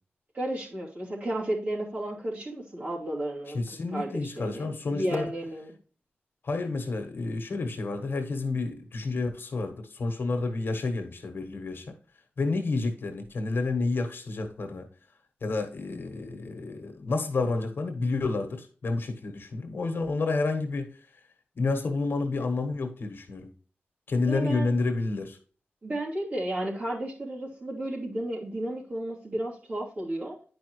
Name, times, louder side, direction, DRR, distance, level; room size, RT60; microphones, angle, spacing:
voice 1, 0.3-3.6 3.9-5.7 24.3-24.7 25.8-30.4, right 1 dB, 45° right, 2.8 m, -33 dB
voice 2, 3.5-5.3 6.4-11.8 12.4-14.9 15.4-20.9 21.6-23.5 24.1-25.4, left 3 dB, 60° left, 1.4 m, -30 dB
10.0 x 5.0 x 3.2 m
wide cardioid pair, 155°, 4 cm